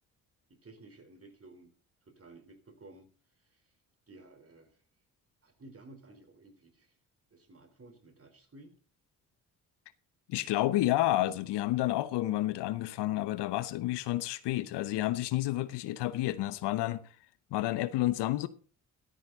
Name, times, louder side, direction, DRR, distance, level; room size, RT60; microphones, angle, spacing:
voice 1, 0.5-1.7 2.1-3.1 3.4-3.6 4.1-4.8 5.4-6.9 7.3-8.7, right 2 dB, 30° right, 3.8 m, -54 dB
voice 2, 10.3-17.1 17.5-18.5, left 15 dB, 70° left, 1.0 m, -30 dB
14.0 x 13.5 x 3.9 m
hypercardioid pair, 45°, 43 cm